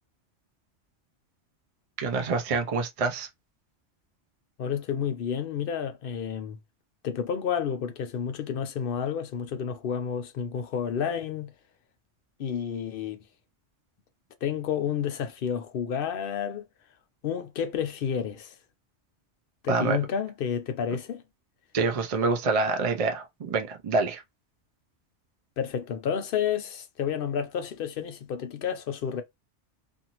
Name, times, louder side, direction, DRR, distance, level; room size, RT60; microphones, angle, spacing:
voice 1, 2.0-3.3 19.7-20.0 21.7-24.2, right 4 dB, 50° right, 0.4 m, -26 dB
voice 2, 4.6-6.6 7.0-11.5 12.4-13.2 14.4-16.6 17.2-18.5 19.6-21.2 25.6-29.2, left 8 dB, 60° left, 0.6 m, -30 dB
2.6 x 2.6 x 2.9 m
omnidirectional pair, 1.2 m